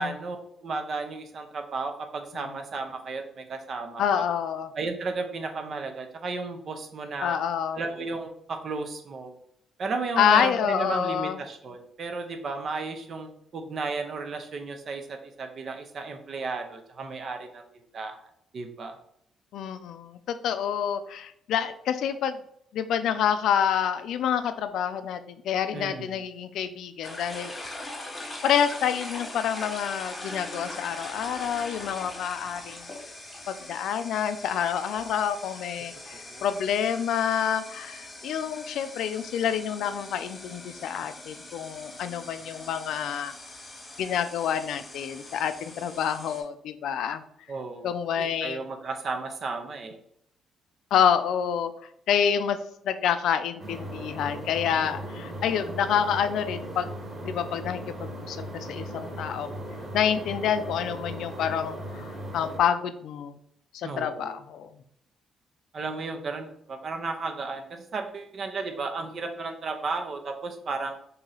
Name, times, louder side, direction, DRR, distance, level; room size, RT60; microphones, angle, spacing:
voice 1, 0.0-4.2 4.8-7.4 7.7-9.3 9.8-17.6 17.9-18.2 18.5-19.0 25.7-26.2 36.3-36.4 47.5-47.9 48.2-50.0 63.8-64.3 65.7-71.0, right 3 dB, 50° right, 6 dB, 0.6 m, -34 dB
voice 2, 4.0-4.7 7.2-7.8 10.2-11.4 19.5-22.4 22.7-27.5 28.2-32.9 33.5-43.3 44.0-47.2 47.8-48.6 50.9-51.7 52.1-52.6 52.8-56.9 57.2-57.8 58.2-59.5 59.9-63.4 63.7-64.7, left 8 dB, 80° left, 11 dB, 0.3 m, -27 dB
sound 1, 27.0-46.4, left 2 dB, 25° left, 1.1 m, -42 dB
sound 2, 53.6-62.6, right 1 dB, 35° right, 1.1 m, -38 dB
3.0 x 2.7 x 3.8 m, 0.71 s
cardioid pair, 90°, 0 cm